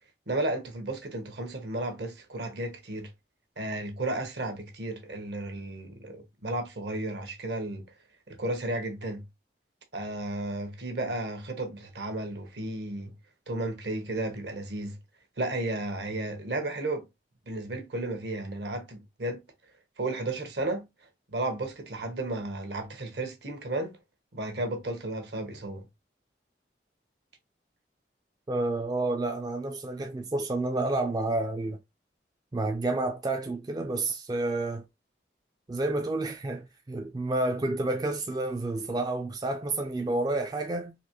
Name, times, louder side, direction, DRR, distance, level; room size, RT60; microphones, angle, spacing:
voice 1, 0.3-3.1 3.6-7.8 8.3-9.2 9.9-13.1 13.5-15.0 15.4-17.1 17.5-19.4 20.0-20.8 21.3-24.0 24.3-25.8, right 2 dB, 70° right, 1.0 m, -33 dB
voice 2, 28.5-31.8 32.5-34.8 35.7-40.9, right 2 dB, 20° right, 0.3 m, -30 dB
4.1 x 2.8 x 2.9 m
head